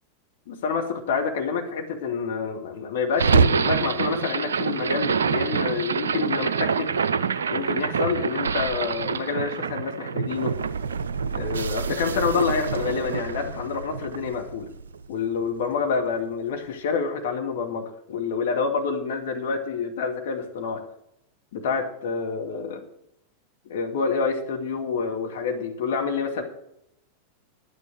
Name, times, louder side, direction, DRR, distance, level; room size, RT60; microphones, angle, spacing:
voice 1, 0.5-6.9 7.5-10.6 11.3-14.7 15.1-20.8 21.5-22.8 23.7-26.4, left 5 dB, 55° left, 3 dB, 2.1 m, -27 dB
sound 1, 3.1-15.4, right 6 dB, 70° right, 0.5 m, -26 dB
11.0 x 9.6 x 6.3 m, 0.79 s
figure-of-eight pair, 90°, 0 cm